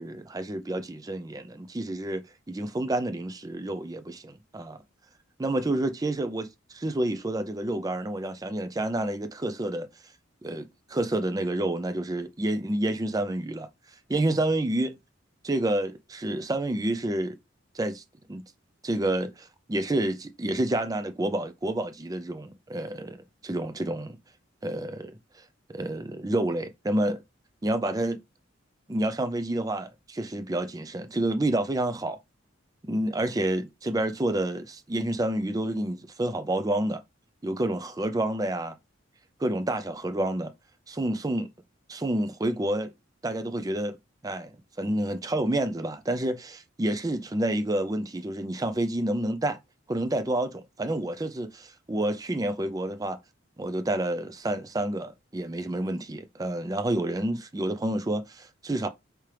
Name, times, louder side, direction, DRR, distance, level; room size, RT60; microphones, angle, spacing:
voice 1, 0.0-4.8 5.4-9.9 10.4-13.7 14.1-14.9 15.4-17.4 17.7-18.0 18.3-18.4 18.8-24.2 24.6-25.1 25.7-27.2 27.6-28.2 28.9-32.2 32.8-37.0 37.4-38.8 39.4-40.5 40.9-41.5 41.9-42.9 43.2-44.0 44.2-44.5 44.8-49.6 49.9-53.2 53.6-58.9, right 1 dB, 15° right, 0.4 m, -29 dB
4.8 x 3.3 x 2.9 m
head